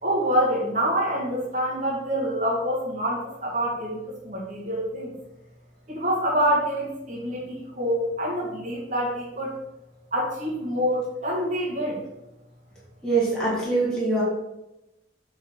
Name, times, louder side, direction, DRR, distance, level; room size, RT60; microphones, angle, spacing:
voice 1, 0.0-5.1 5.9-9.5 10.1-12.0, equal, 40° right, -5 dB, 1.9 m, -26 dB
voice 2, 13.0-14.2, right 3 dB, 5° left, -8 dB, 1.9 m, -23 dB
7.1 x 4.1 x 4.6 m, 0.94 s
head